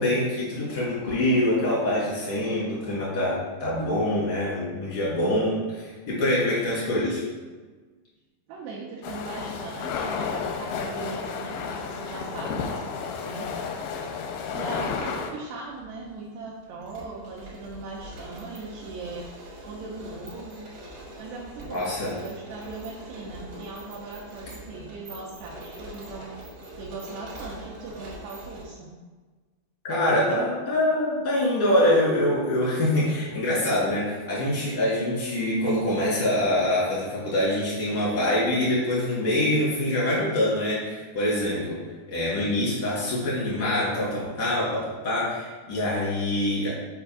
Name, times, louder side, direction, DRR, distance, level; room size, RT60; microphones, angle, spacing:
voice 1, 0.0-7.2 21.7-22.1 29.8-41.8 42.1-46.7, left 1 dB, 65° left, -7 dB, 0.9 m, -25 dB
voice 2, 8.5-13.5 14.5-19.3 19.6-20.7 21.2-26.3 26.8-29.0, right 3 dB, 80° right, -5 dB, 2.7 m, -39 dB
sound 1, 9.0-15.3, left 6 dB, 85° left, 2.7 m, -32 dB
sound 2, 13.1-13.2 14.1-14.9 15.2-15.3 15.7-28.6, right 1 dB, 60° right, 1.5 m, -43 dB
6.9 x 2.5 x 5.5 m, 1.3 s
omnidirectional pair, 5.0 m